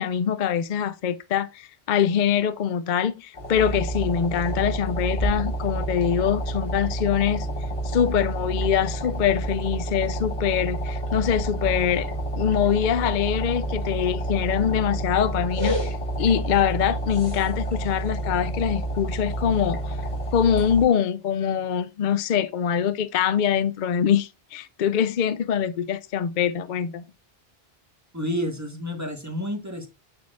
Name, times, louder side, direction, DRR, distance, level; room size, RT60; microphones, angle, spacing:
voice 1, 0.0-7.5 7.8-12.1 12.3-20.0 20.3-27.0, left 8 dB, 60° left, 0.6 m, -24 dB
sound 1, 3.3-20.8, right 1 dB, 30° left, 1.2 m, -29 dB
voice 2, 28.1-29.9, equal, 15° right, 1.3 m, -30 dB
9.4 x 4.4 x 2.4 m
omnidirectional pair, 1.1 m